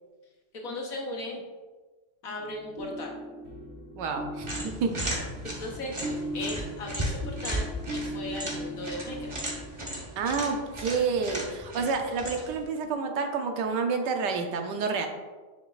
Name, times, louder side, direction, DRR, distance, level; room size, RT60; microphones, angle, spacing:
voice 1, 0.5-1.4 2.2-3.1 5.6-7.7 7.9-9.3, left 2 dB, 60° left, 0 dB, 1.0 m, -37 dB
sound 1, 2.4-10.4, equal, 45° right, 1.3 m, -39 dB
voice 2, 4.0-4.5 4.8-4.9 10.2-15.1, right 5 dB, 75° right, 4 dB, 1.2 m, -29 dB
sound 2, 4.4-12.6, right 1 dB, 25° right, 0.7 m, -36 dB
6.7 x 6.3 x 2.4 m, 1.3 s
omnidirectional pair, 2.0 m